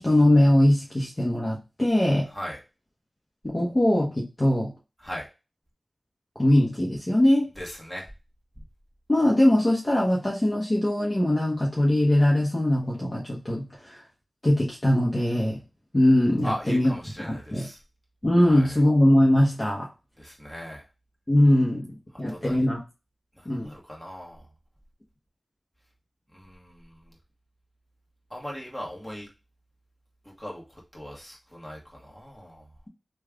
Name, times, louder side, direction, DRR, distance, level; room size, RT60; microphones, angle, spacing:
voice 1, 0.0-2.3 3.4-4.7 6.4-7.5 9.1-14.0 14.4-15.6 15.9-16.9 17.2-17.7 18.2-19.9 21.3-21.9 22.2-22.8 23.5-23.7, left 1 dB, 30° left, -3 dB, 0.9 m, -21 dB
voice 2, 7.6-8.1 16.4-17.8 18.4-18.8 20.2-20.8 22.3-22.7 23.4-24.5 26.3-27.0 28.3-29.3 30.4-32.7, equal, 10° left, -3 dB, 1.5 m, -38 dB
3.1 x 2.4 x 3.6 m, 0.28 s
cardioid pair, 50°, 0 cm